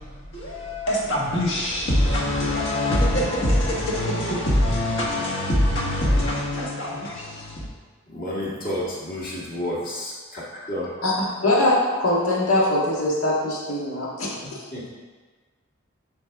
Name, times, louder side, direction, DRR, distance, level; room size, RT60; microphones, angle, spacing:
voice 1, 0.3-7.7, left 1 dB, 55° left, -4 dB, 1.5 m, -23 dB
voice 2, 8.1-10.4 10.7-10.9 14.4-15.0, left 1 dB, 40° left, -6 dB, 1.7 m, -31 dB
voice 3, 11.4-11.7 12.0-14.6, left 1 dB, 90° left, -5 dB, 1.7 m, -22 dB
10.0 x 3.5 x 3.6 m, 1.4 s
head